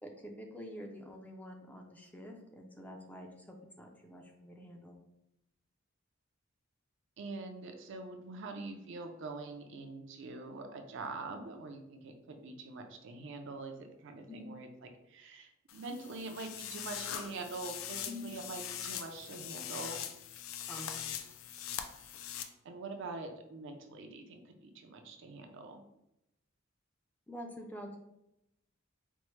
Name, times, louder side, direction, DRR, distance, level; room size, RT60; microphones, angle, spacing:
voice 1, 0.0-5.0 11.3-11.4 14.3-14.5 18.1-18.3 20.7-20.9 24.2-24.3 27.3-28.0, left 1 dB, 10° left, 1 dB, 0.4 m, -47 dB
voice 2, 7.2-14.7 15.1-20.0 22.4-25.8, right 3 dB, 65° right, 5 dB, 0.4 m, -44 dB
sound 1, 15.7-22.4, left 9 dB, 80° left, 0.4 m, -42 dB
4.3 x 2.0 x 3.0 m, 0.85 s
head